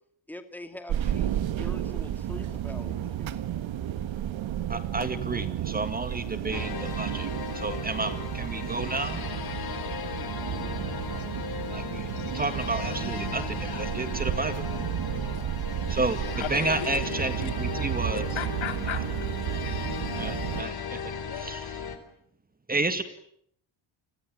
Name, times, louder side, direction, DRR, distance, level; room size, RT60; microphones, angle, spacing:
voice 1, 0.3-1.3 1.6-3.5, left 1 dB, 5° left, 7 dB, 2.5 m, -43 dB
sound 1, 0.9-20.6, right 11 dB, 70° right, 1.7 m, -32 dB
voice 2, 4.7-7.3 7.5-9.2 11.7-12.1 12.3-14.6 15.9-16.2 16.5-18.2 18.9-19.0 20.2-21.8 22.7-23.0, right 2 dB, 20° right, 10 dB, 2.0 m, -31 dB
sound 2, 6.5-22.0, left 7 dB, 50° left, 3.6 m, -36 dB
voice 3, 11.2-11.9 12.1-12.4 13.7-13.8 15.0-15.9 16.3-16.9 18.3-20.2 21.3-21.5, left 10 dB, 70° left, 7 dB, 4.1 m, -39 dB
29.0 x 22.0 x 8.9 m, 0.69 s
cardioid pair, 140°, 47 cm